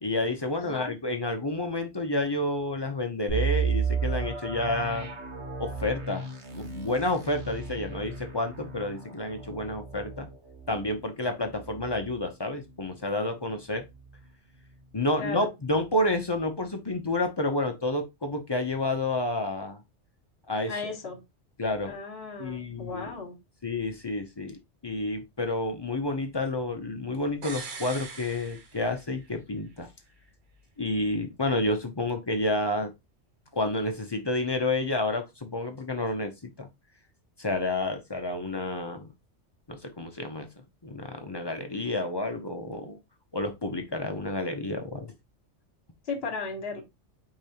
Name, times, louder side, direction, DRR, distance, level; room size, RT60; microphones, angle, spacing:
voice 1, 0.0-5.1 5.6-6.3 6.5-10.3 10.7-13.9 14.9-19.8 20.5-20.7 21.6-21.9 22.4-23.1 23.6-29.9 30.8-32.9 33.5-36.7 37.4-39.1 39.7-40.5 40.8-43.0 43.3-45.1, left 2 dB, 30° left, 5 dB, 0.5 m, -30 dB
voice 2, 0.5-0.9 15.2-15.5 20.6-21.2 21.9-23.4 46.0-46.8, left 4 dB, 60° left, 4 dB, 1.5 m, -36 dB
sound 1, 3.3-13.0 13.3-13.4 14.0-14.2, right 5 dB, 65° right, 1.4 m, -34 dB
sound 2, 27.4-29.3 29.6-29.7, right 4 dB, 45° right, 0.9 m, -41 dB
4.9 x 3.8 x 2.8 m, 0.22 s
omnidirectional pair, 1.2 m